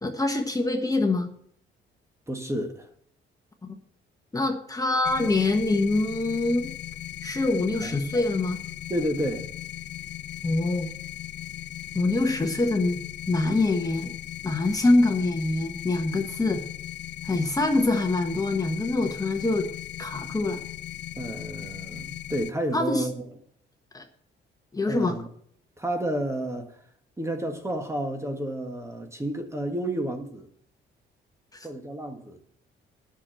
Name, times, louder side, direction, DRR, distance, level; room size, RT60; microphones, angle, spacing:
voice 1, 0.0-1.3 3.6-3.7 4.3-6.7 7.2-8.6 10.4-10.9 11.9-13.0 13.3-14.1 14.4-16.6 17.2-19.7 20.0-20.6 22.7-23.0 23.9-24.0 24.7-25.2 31.5-31.7, left 2 dB, 20° left, 1.4 m, -24 dB
voice 2, 2.3-2.9 7.8-8.0 8.9-9.5 21.1-23.3 24.9-25.3 25.8-26.8 27.2-30.5 31.6-32.4, right 1 dB, 15° right, 1.7 m, -31 dB
sound 1, 5.0-22.5, left 13 dB, 60° left, 0.5 m, -38 dB
9.8 x 6.4 x 7.6 m
cardioid pair, 90°, 20 cm